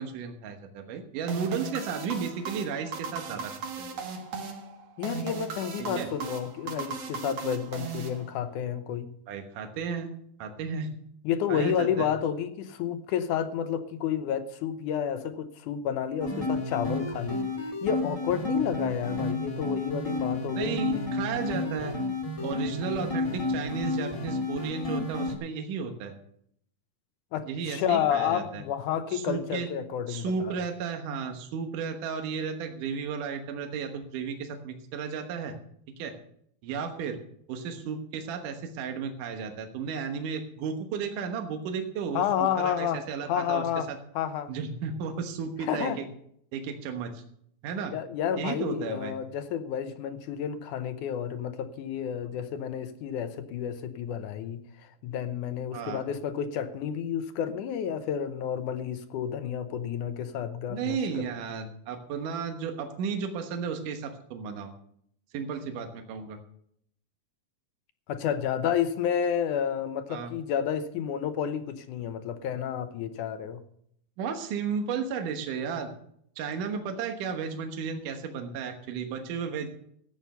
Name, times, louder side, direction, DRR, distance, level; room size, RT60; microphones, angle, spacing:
voice 1, 0.0-3.5 3.8-4.0 5.8-6.1 9.3-10.1 10.4-10.9 11.5-12.1 20.5-22.0 22.4-26.2 27.5-28.6 29.1-29.7 30.1-35.5 36.0-36.1 36.6-37.2 37.5-44.0 44.5-46.1 46.5-47.2 47.6-47.9 48.4-49.1 55.7-56.1 60.7-64.7 65.3-66.4 70.1-70.3 74.2-75.9 76.4-79.7, right 6 dB, 75° right, 5 dB, 2.7 m, -33 dB
sound 1, 1.3-8.7, right 6 dB, 50° right, 2.5 m, -37 dB
voice 2, 5.0-9.1 11.2-21.0 27.3-30.7 42.2-43.9 44.2-44.5 45.6-46.0 47.9-54.6 55.0-61.2 68.1-73.6, left 8 dB, 75° left, 10 dB, 2.2 m, -30 dB
sound 2, 16.2-25.3, left 2 dB, 15° left, 1.6 m, -31 dB
14.0 x 9.0 x 5.6 m, 0.67 s
omnidirectional pair, 3.9 m